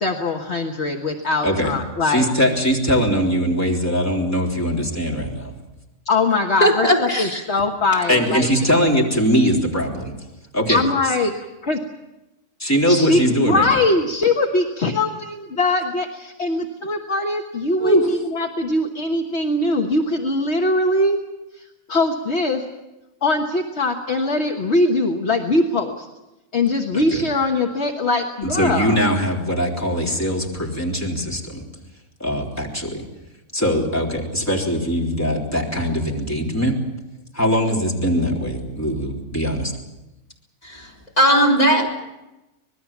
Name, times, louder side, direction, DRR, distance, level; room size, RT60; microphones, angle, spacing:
voice 1, 0.0-2.3 6.0-8.5 10.7-11.3 11.7-11.8 12.9-21.2 21.5-22.6 23.2-26.1 26.5-29.0, left 2 dB, 55° left, 3 dB, 1.7 m, -21 dB
voice 2, 2.0-5.5 8.1-10.1 10.5-10.8 12.6-13.8 17.8-18.1 26.9-27.2 28.5-31.6 32.2-33.1 33.5-36.8 37.3-39.7, equal, 10° left, -1 dB, 3.6 m, -21 dB
voice 3, 6.6-7.4 40.6-40.9 41.2-41.9, equal, 30° left, -2 dB, 4.3 m, -17 dB
25.5 x 20.0 x 7.3 m, 0.97 s
omnidirectional pair, 1.4 m